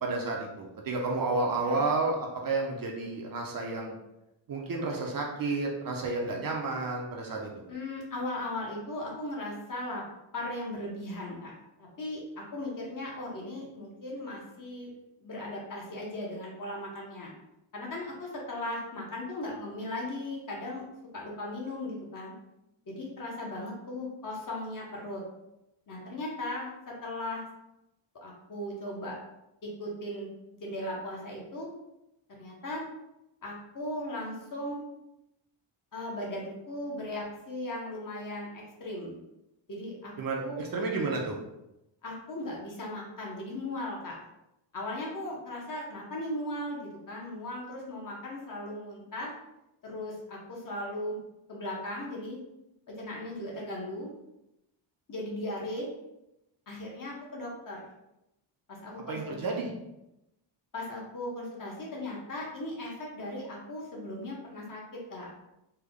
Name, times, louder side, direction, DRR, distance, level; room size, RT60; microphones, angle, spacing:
voice 1, 0.0-3.9 4.5-7.5 40.2-41.4 59.1-59.7, right 3 dB, 45° right, 0 dB, 0.5 m, -31 dB
voice 2, 7.7-10.0 10.3-11.5 11.8-14.9 15.2-17.3 17.7-20.8 21.1-22.3 22.9-25.2 25.9-27.4 28.2-29.2 29.6-30.3 30.6-31.7 32.3-32.8 33.4-34.8 35.9-39.1 39.7-40.6 42.0-44.2 44.7-46.8 47.1-49.3 49.8-51.2 51.5-52.4 52.9-54.1 55.1-55.9 56.7-57.9 58.7-59.4 60.7-65.3, left 1 dB, 40° left, -3 dB, 0.8 m, -37 dB
3.4 x 2.0 x 3.5 m, 0.88 s
wide cardioid pair, 175°, 48 cm